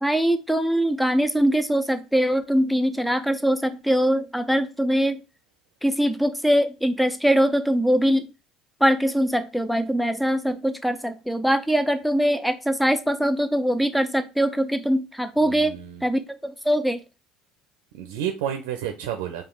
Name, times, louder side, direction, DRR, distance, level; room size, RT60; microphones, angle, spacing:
voice 1, 0.0-5.2 5.8-8.3 8.8-17.0, equal, ahead, 0.7 m, -22 dB
voice 2, 15.4-16.1 17.9-19.4, right 9 dB, 75° right, 0.6 m, -30 dB
5.0 x 2.5 x 3.7 m
hypercardioid pair, 70°, 0 cm